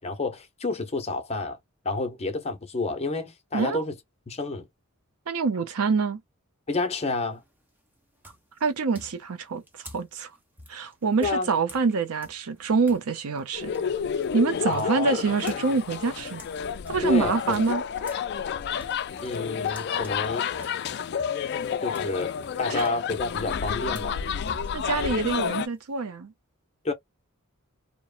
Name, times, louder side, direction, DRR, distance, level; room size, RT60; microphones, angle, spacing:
voice 1, 0.0-1.6 1.8-3.9 4.3-4.7 6.7-7.4 11.2-11.5 14.6-15.2 17.0-17.6 19.2-20.4 21.8-22.3 22.6-24.3 26.8-26.9, left 3 dB, 30° left, 0.7 m, -29 dB
voice 2, 3.5-3.8 5.3-6.2 8.6-10.3 10.7-13.7 14.3-16.4 16.9-17.8 22.7-22.9 24.7-26.3, right 4 dB, 90° right, 0.6 m, -26 dB
sound 1, 7.3-7.7 8.2-13.1 13.4-18.3 18.6-26.0, equal, 10° right, 0.6 m, -49 dB
sound 2, 13.5-25.7, left 7 dB, 50° left, 0.3 m, -30 dB
3.0 x 2.1 x 2.4 m
head